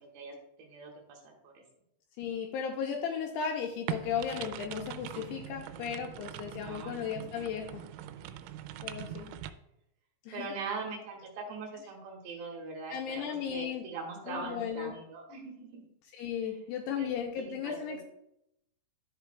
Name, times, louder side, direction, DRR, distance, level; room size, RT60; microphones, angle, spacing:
voice 1, 0.0-1.6 5.7-7.2 9.1-9.2 10.3-15.8 17.0-17.1 17.6-18.0, right 4 dB, 70° right, 0 dB, 3.6 m, -42 dB
voice 2, 2.2-7.8 8.8-9.3 10.2-10.5 12.9-13.9 14.3-14.9 16.1-18.0, left 7 dB, 85° left, 2 dB, 2.4 m, -35 dB
sound 1, 3.9-9.5, right 11 dB, 90° right, 3.0 m, -42 dB
11.5 x 8.1 x 2.3 m, 0.82 s
omnidirectional pair, 5.3 m